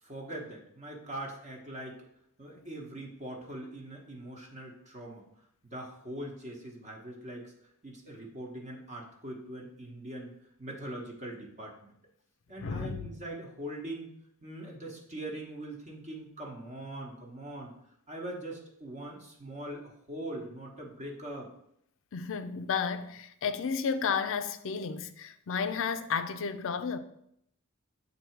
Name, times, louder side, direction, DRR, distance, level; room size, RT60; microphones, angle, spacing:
voice 1, 0.0-2.0 2.4-5.3 5.6-10.3 10.6-11.9 12.5-14.1 14.4-17.7 18.1-21.5, right 1 dB, 35° right, 1.0 m, -42 dB
voice 2, 12.6-13.1 22.1-27.0, left 6 dB, 65° left, 0.5 m, -32 dB
7.8 x 2.8 x 4.5 m
head